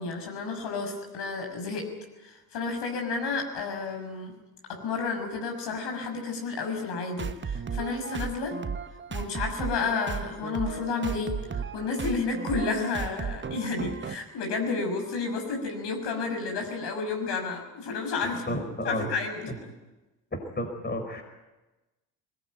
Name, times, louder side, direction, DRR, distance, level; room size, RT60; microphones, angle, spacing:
voice 1, 0.0-1.9 2.2-4.3 4.7-8.6 9.1-19.7, left 4 dB, 60° left, 3 dB, 6.3 m, -31 dB
sound 1, 7.2-14.2, right 6 dB, 25° right, 1.3 m, -35 dB
voice 2, 18.5-19.1 19.5-19.6 20.3-21.3, left 1 dB, 20° left, 5 dB, 5.1 m, -32 dB
21.5 x 19.0 x 9.2 m, 1.1 s
hypercardioid pair, 60°, 48 cm